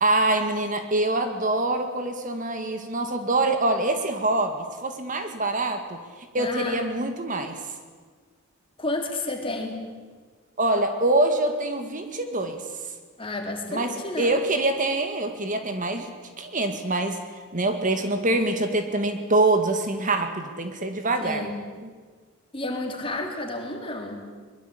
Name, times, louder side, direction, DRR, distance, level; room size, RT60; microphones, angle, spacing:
voice 1, 0.0-6.0 6.3-7.6 10.6-12.6 13.7-16.1 16.4-17.2 17.5-21.5, right 2 dB, 40° right, 6 dB, 2.1 m, -25 dB
voice 2, 6.4-6.8 8.8-9.8 13.2-14.4 21.2-21.6 22.5-24.3, left 2 dB, 25° left, 3 dB, 3.7 m, -31 dB
23.0 x 21.5 x 8.7 m, 1.5 s
head